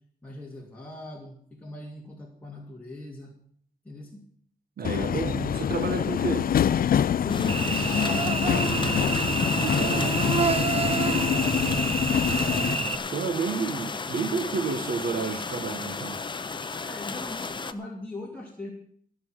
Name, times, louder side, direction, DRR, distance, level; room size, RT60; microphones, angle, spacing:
voice 1, 0.2-3.3 3.8-4.2 7.1-7.8 16.8-18.7, left 1 dB, 10° left, -3 dB, 2.5 m, -40 dB
Subway metro underground, 4.8-12.7, left 9 dB, 75° left, 0.4 m, -26 dB
voice 2, 4.8-6.6 8.4-9.1 9.6-10.2 10.9-11.8 12.2-12.7 13.1-16.2, right 5 dB, 80° right, 8 dB, 1.7 m, -31 dB
sound 1, 7.3-17.7, left 4 dB, 30° left, 0.8 m, -34 dB
Cricket / Buzz, 7.5-13.0, right 4 dB, 40° right, 1.0 m, -28 dB
16.0 x 6.1 x 9.1 m, 0.62 s
wide cardioid pair, 130°, 15 cm